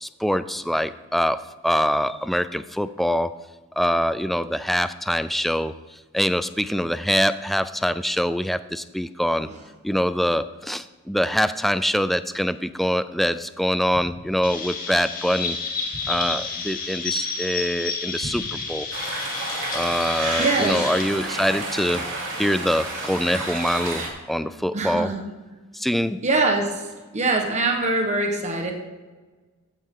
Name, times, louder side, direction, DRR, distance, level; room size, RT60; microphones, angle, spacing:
voice 1, 0.0-3.3 3.8-5.7 6.1-9.5 9.8-15.6 16.1-18.9 19.7-22.1 22.4-25.1 25.7-26.2, equal, ahead, 13 dB, 0.3 m, -24 dB
sound 1, 13.9-14.9 15.4-15.5 15.6-16.4 16.9-17.1 17.4-17.5 18.0-18.7 19.1-19.2, right 1 dB, 75° right, 4.2 m, -40 dB
Chirp tweet, 14.4-21.0, left 4 dB, 40° left, 1.9 m, -30 dB
sound 2, 18.9-24.1, right 2 dB, 60° right, 3.2 m, -30 dB
voice 2, 20.4-21.2 24.7-25.2 26.2-26.8 27.1-28.7, right 2 dB, 30° right, 3 dB, 1.3 m, -23 dB
16.0 x 9.2 x 3.8 m, 1.3 s
head